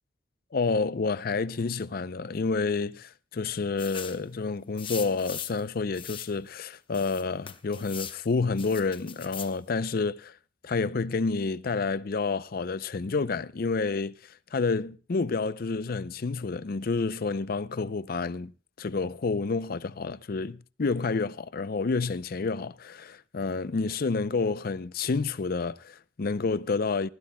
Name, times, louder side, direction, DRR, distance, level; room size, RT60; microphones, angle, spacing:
voice 1, 0.5-10.3 10.6-14.1 14.5-18.5 18.8-27.1, left 4 dB, 50° left, 0.5 m, -29 dB
sound 1, 3.8-4.2 4.8-5.6 5.9-6.3 6.9-8.2 8.6-9.5, left 8 dB, 30° left, 0.9 m, -40 dB
19.0 x 15.5 x 2.2 m
head